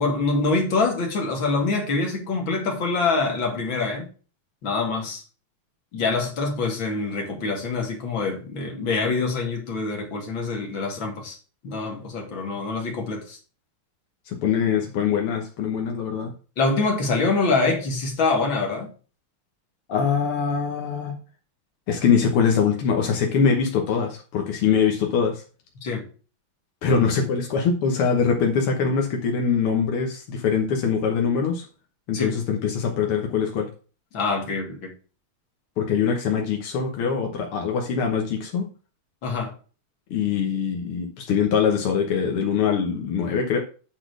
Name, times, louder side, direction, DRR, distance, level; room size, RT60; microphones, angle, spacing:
voice 1, 0.0-4.1 4.6-5.2 5.9-11.4 11.6-13.4 16.6-18.9 25.8-26.0 32.1-32.3 34.1-34.9 39.2-39.5, left 3 dB, 65° left, 2.9 m, -25 dB
voice 2, 14.3-16.3 19.9-21.1 21.9-25.4 26.8-31.7 32.1-33.7 35.8-38.7 40.1-43.6, left 6 dB, 90° left, 2.1 m, -23 dB
8.7 x 4.1 x 6.2 m
omnidirectional pair, 2.3 m